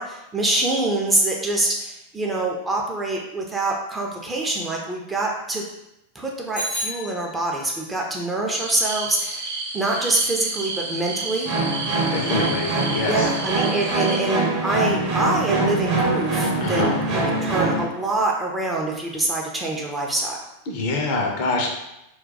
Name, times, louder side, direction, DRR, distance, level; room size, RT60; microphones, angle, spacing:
voice 1, 0.0-5.7 6.1-11.5 13.1-20.5, right 2 dB, 10° right, -1 dB, 0.5 m, -25 dB
Bicycle bell, 6.5-7.8, equal, 75° left, 0.9 m, -31 dB
sound 1, 8.5-14.2, right 3 dB, 60° right, 0.4 m, -31 dB
sound 2, 11.4-17.8, right 2 dB, 40° right, 0.8 m, -23 dB
voice 2, 12.1-13.3 16.6-16.9 20.7-21.7, left 3 dB, 45° left, 0 dB, 0.6 m, -25 dB
2.3 x 2.2 x 3.9 m, 0.88 s
figure-of-eight pair, 90°, 0 cm